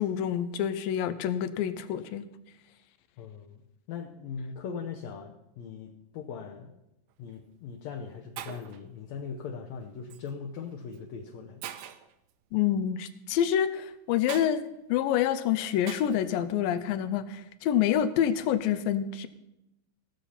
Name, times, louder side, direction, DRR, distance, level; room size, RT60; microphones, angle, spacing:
voice 1, 0.0-2.3 12.5-19.3, left 10 dB, 85° left, 12 dB, 2.5 m, -27 dB
voice 2, 3.2-3.6 3.9-6.8 7.2-11.6, left 6 dB, 70° left, 1 dB, 1.8 m, -40 dB
Shatter, 7.1-7.4 8.1-8.2 8.4-8.8 10.1-10.3 10.9-11.0 11.6-12.1 14.3-14.5 15.9-16.3, right 11 dB, 80° right, 2.4 m, -41 dB
17.0 x 7.0 x 5.7 m, 0.88 s
omnidirectional pair, 4.0 m